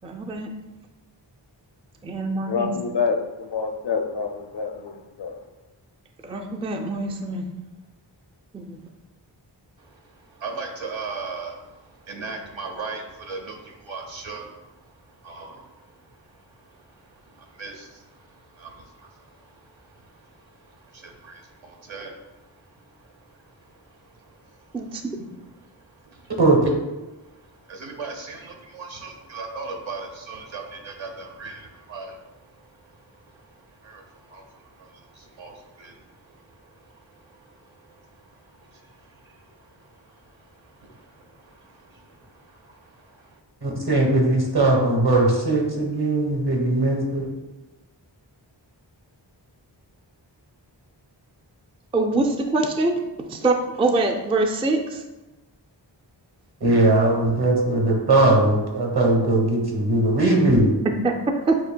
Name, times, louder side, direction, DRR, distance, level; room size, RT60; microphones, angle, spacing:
voice 1, 0.0-0.5 2.0-2.7 6.2-7.5 8.5-8.8 24.7-25.1 51.9-53.0 53.3-55.0 61.0-61.6, right 2 dB, 15° right, 3 dB, 0.3 m, -24 dB
voice 2, 2.5-5.4, left 5 dB, 65° left, 5 dB, 0.6 m, -27 dB
voice 3, 9.8-25.1 25.4-26.3 27.2-43.4, right 4 dB, 85° right, 1 dB, 0.8 m, -41 dB
voice 4, 26.4-26.7 43.6-47.3 56.6-60.9, right 2 dB, 60° right, -1 dB, 1.2 m, -19 dB
7.7 x 2.6 x 2.2 m, 1.1 s
wide cardioid pair, 55°, 45 cm